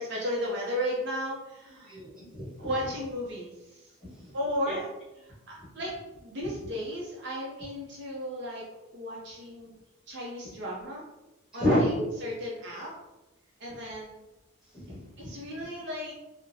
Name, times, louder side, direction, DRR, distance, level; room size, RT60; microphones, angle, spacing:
voice 1, 0.0-1.9 2.6-3.9 4.3-4.9 5.2-5.9 6.2-8.6 8.9-9.7 10.1-11.0 11.5-12.9 13.6-14.1 15.2-16.1, equal, 55° right, -4 dB, 0.6 m, -34 dB
voice 2, 1.9-2.7 4.1-4.3 4.7-4.8 11.5-11.9 14.7-15.3, equal, 5° right, -10 dB, 1.4 m, -29 dB
3.7 x 2.1 x 2.7 m, 1.0 s
head